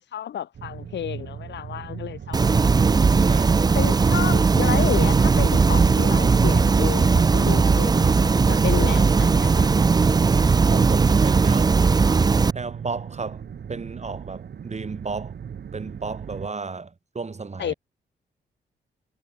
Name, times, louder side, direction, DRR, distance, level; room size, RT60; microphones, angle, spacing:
voice 1, 0.0-3.0 3.7-9.7 17.6-17.7, left 10 dB, 80° left, 4.3 m, -31 dB
sound 1, 0.5-16.5, right 7 dB, 65° right, 6.7 m, -37 dB
sound 2, 2.3-12.5, right 4 dB, 20° right, 0.4 m, -18 dB
voice 2, 3.3-3.7 10.6-11.8 12.5-15.4 15.7-17.7, right 4 dB, 40° right, 5.5 m, -33 dB
cardioid pair, 65°, 18 cm